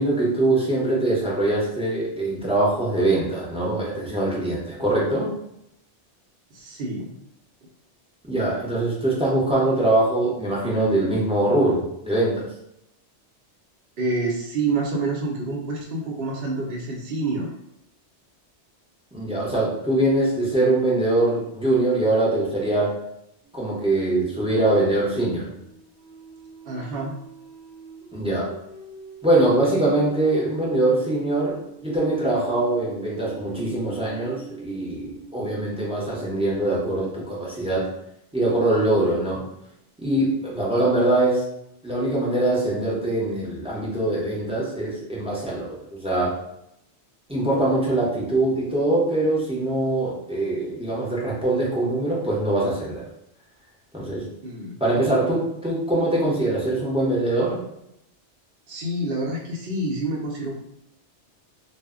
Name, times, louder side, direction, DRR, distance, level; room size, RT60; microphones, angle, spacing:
voice 1, 0.0-5.3 8.3-12.5 19.1-23.0 23.5-25.5 28.1-28.5 29.2-31.6 31.8-37.9 38.3-39.4 40.0-41.4 41.8-46.3 47.3-53.0 53.9-54.3 54.8-57.6, right 2 dB, 5° right, -6 dB, 0.5 m, -23 dB
voice 2, 6.5-7.1 14.0-17.5 26.7-27.1 54.4-54.7 58.7-60.5, right 2 dB, 60° right, 0 dB, 0.8 m, -27 dB
sound 1, 23.4-23.6 25.5-36.6, right 3 dB, 85° right, 1.0 m, -44 dB
2.1 x 2.0 x 3.5 m, 0.80 s
omnidirectional pair, 1.2 m